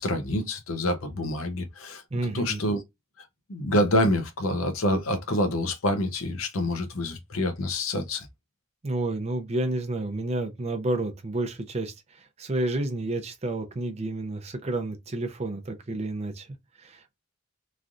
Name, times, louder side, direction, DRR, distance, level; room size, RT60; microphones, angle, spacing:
voice 1, 0.0-2.0 2.3-2.8 3.2-8.3, left 1 dB, 85° left, 0.7 m, -27 dB
voice 2, 2.1-2.6 8.8-11.9 12.4-16.5 16.8-17.2, right 2 dB, 30° right, 0.5 m, -30 dB
3.2 x 2.4 x 2.5 m
head